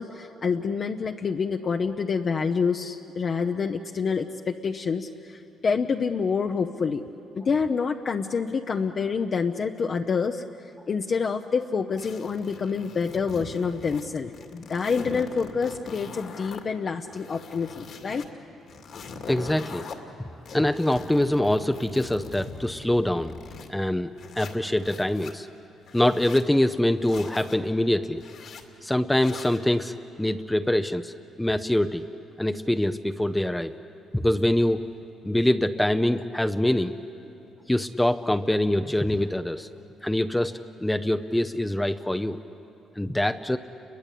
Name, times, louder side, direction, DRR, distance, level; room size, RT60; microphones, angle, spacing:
voice 1, 0.0-7.1 7.4-10.4 10.9-18.2, left 5 dB, 45° left, 4 dB, 0.8 m, -27 dB
sound 1, 12.0-14.1 14.3-16.6 17.0-18.3 18.7-20.0 20.5-23.7 24.2-25.3 25.8-26.5 27.0-27.6 28.2-28.6 29.1-29.6, left 4 dB, 65° left, 2.4 m, -41 dB
voice 2, 19.3-19.8 20.5-23.3 23.7-24.1 24.4-25.5 25.9-28.2 28.8-29.9 30.2-32.1 32.4-33.7 34.1-34.8 35.2-36.9 37.7-39.7 40.0-42.4 43.0-43.6, left 1 dB, 5° left, 8 dB, 0.7 m, -24 dB
29.5 x 22.5 x 8.5 m, 2.9 s
cardioid pair, 85°, 0 cm